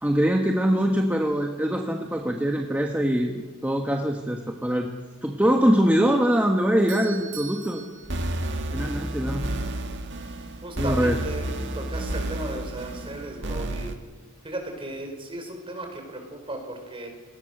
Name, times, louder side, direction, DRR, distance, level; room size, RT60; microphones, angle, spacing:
voice 1, 0.0-4.9 5.2-7.8 8.7-9.5 10.8-11.2, equal, 10° right, 2 dB, 1.4 m, -23 dB
Doorbell, 6.7-9.3, right 7 dB, 80° right, 6.0 m, -43 dB
sound 1, 8.0-14.0, right 1 dB, 60° right, 2.0 m, -31 dB
voice 2, 10.6-11.5 11.7-13.9 14.4-17.1, right 1 dB, 25° right, 4 dB, 5.1 m, -35 dB
27.0 x 19.5 x 6.8 m, 1.3 s
head